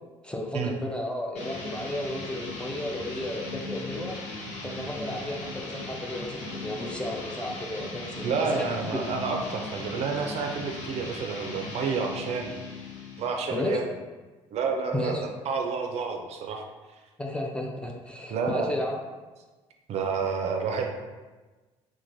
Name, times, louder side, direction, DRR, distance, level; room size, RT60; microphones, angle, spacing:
voice 1, 0.2-4.2 4.6-9.0 13.5-13.8 14.9-15.2 17.2-19.0, left 1 dB, 10° left, 0 dB, 0.4 m, -33 dB
sound 1, 1.3-13.9, left 2 dB, 65° left, 0.7 m, -38 dB
voice 2, 8.2-12.5 13.2-13.9 14.5-16.6 18.3-18.7 19.9-20.9, right 5 dB, 55° right, 3 dB, 0.4 m, -29 dB
3.0 x 2.2 x 2.5 m, 1.3 s
supercardioid pair, 85°, 13 cm